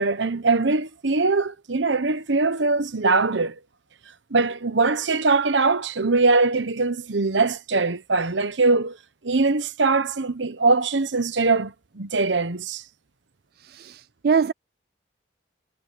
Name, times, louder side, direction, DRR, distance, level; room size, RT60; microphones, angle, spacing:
voice 1, 0.0-3.6 4.3-9.0 9.2-12.8, right 3 dB, 75° right, 1.1 m, -22 dB
voice 2, 13.6-14.5, right 6 dB, 55° right, 0.3 m, -23 dB
head